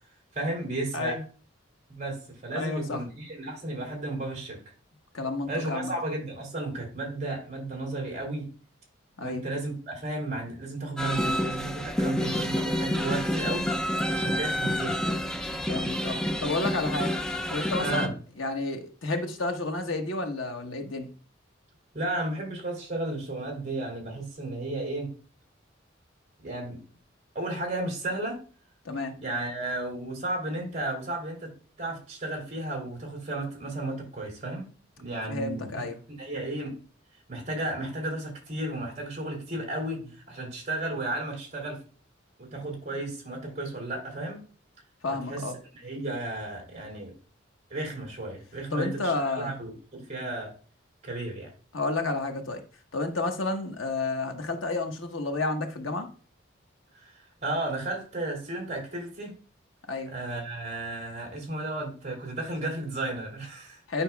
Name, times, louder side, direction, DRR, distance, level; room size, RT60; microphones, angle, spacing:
voice 1, 0.3-1.2 1.9-4.6 5.5-8.5 9.2-13.7 14.1-15.0 17.8-18.1 21.9-25.1 26.4-26.8 27.3-28.4 29.2-31.5 31.8-34.7 35.0-35.8 36.2-36.8 37.3-41.8 42.4-44.4 45.3-45.4 45.8-47.1 47.7-50.5 51.0-51.5 57.0-57.1 57.4-59.3 60.1-63.8, right 2 dB, 35° right, 0 dB, 3.4 m, -33 dB
voice 2, 2.5-3.0 5.1-5.9 9.2-9.4 15.7-17.2 17.5-21.1 28.8-29.1 35.3-36.0 45.0-45.6 48.7-49.6 51.7-52.6 52.9-56.1 59.9-60.1 63.9-64.0, left 2 dB, 90° left, 4 dB, 1.2 m, -31 dB
sound 1, 11.0-18.1, left 1 dB, 5° left, 0.4 m, -29 dB
9.7 x 5.6 x 2.3 m, 0.37 s
head